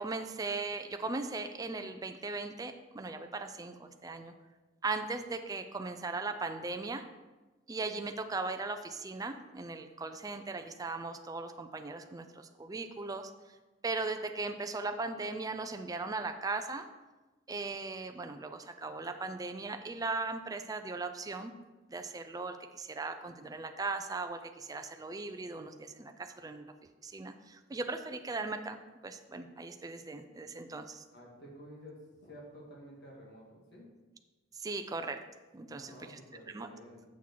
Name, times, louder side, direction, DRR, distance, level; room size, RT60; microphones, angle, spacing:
voice 1, 0.0-4.3 4.8-7.0 7.7-13.3 13.8-16.9 17.5-21.5 21.9-26.7 27.0-28.8 29.0-31.0 34.5-35.2 35.5-36.2 36.5-36.7, right 3 dB, 20° right, 7 dB, 0.4 m, -38 dB
voice 2, 31.1-33.9 35.6-37.0, equal, 60° left, -3 dB, 1.8 m, -51 dB
7.3 x 6.0 x 4.5 m, 1.2 s
head